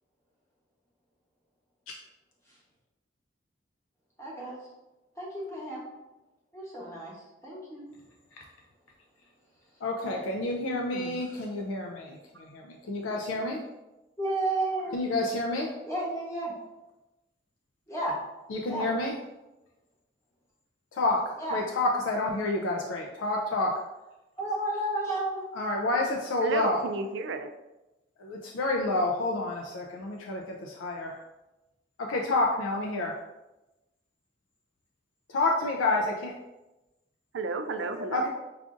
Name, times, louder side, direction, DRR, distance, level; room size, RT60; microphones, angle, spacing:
voice 1, 4.2-4.6 5.2-5.8 6.5-7.8 10.9-11.5 14.2-15.0 15.8-16.5 17.9-18.1 18.7-18.9 21.4-21.6 24.4-25.4 37.9-38.3, right 1 dB, 15° left, -5 dB, 0.9 m, -33 dB
voice 2, 9.8-13.6 14.9-15.7 18.5-19.1 20.9-23.7 25.6-26.9 28.2-31.2 32.1-33.2 35.3-36.3 38.1-38.3, left 2 dB, 90° left, 0 dB, 0.4 m, -29 dB
voice 3, 26.4-27.5 37.3-38.3, right 4 dB, 65° right, 8 dB, 0.3 m, -32 dB
4.7 x 2.5 x 2.4 m, 1.0 s
head